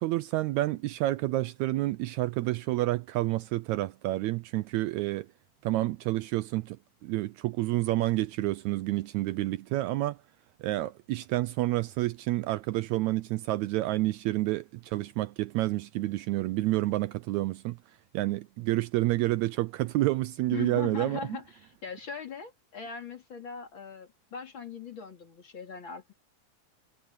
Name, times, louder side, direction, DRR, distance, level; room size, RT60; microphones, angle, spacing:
voice 1, 0.0-5.3 5.6-6.8 7.0-10.2 10.6-17.8 18.1-21.2, right 17 dB, 80° right, 1.8 m, -29 dB
voice 2, 20.5-26.1, left 7 dB, 40° left, 3.4 m, -40 dB
omnidirectional pair, 3.5 m